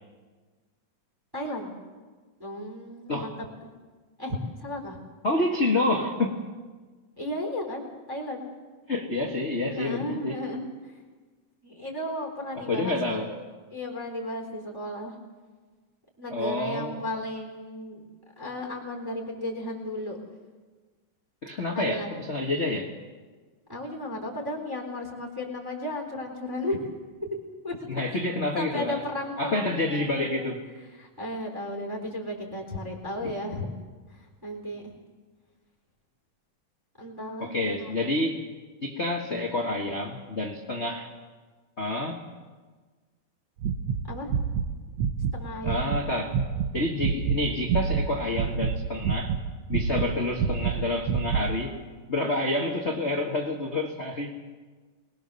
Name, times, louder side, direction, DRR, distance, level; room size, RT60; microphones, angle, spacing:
voice 1, 1.3-1.8 2.4-3.3 4.2-5.0 7.2-8.5 9.8-11.0 11.6-13.3 13.7-15.1 16.2-18.0 18.4-20.2 21.7-22.1 23.7-26.8 27.2-27.3 27.6-28.2 28.6-30.5 31.0-33.7 34.1-34.8 37.0-37.5 37.8-37.9 44.1-44.3 45.3-45.8, left 1 dB, 5° right, 2 dB, 3.4 m, -34 dB
voice 2, 5.2-6.4 8.9-10.4 12.7-13.3 16.3-17.0 21.4-22.9 27.9-29.0 29.4-30.6 33.2-33.3 37.4-38.4 38.8-41.1 41.8-42.2 45.6-46.4 46.7-49.4 49.7-51.8 52.1-54.4, left 2 dB, 50° left, 1 dB, 0.8 m, -28 dB
sound 1, 43.6-46.0 46.3-46.7 47.0-48.1 48.3-49.4 49.7-51.5, right 7 dB, 60° right, 1.9 m, -27 dB
24.5 x 20.5 x 6.9 m, 1.4 s
omnidirectional pair, 4.0 m